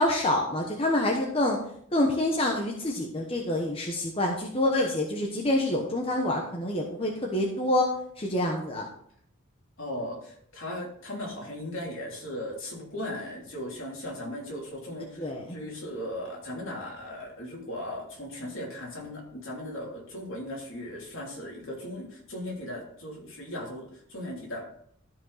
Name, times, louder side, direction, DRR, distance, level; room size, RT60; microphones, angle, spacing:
voice 1, 0.0-1.6 1.9-7.9 8.2-8.9 15.2-15.6, left 1 dB, 25° left, 0 dB, 1.0 m, -27 dB
voice 2, 9.8-24.6, left 1 dB, 65° left, -2 dB, 3.0 m, -37 dB
12.5 x 5.3 x 4.1 m, 0.65 s
head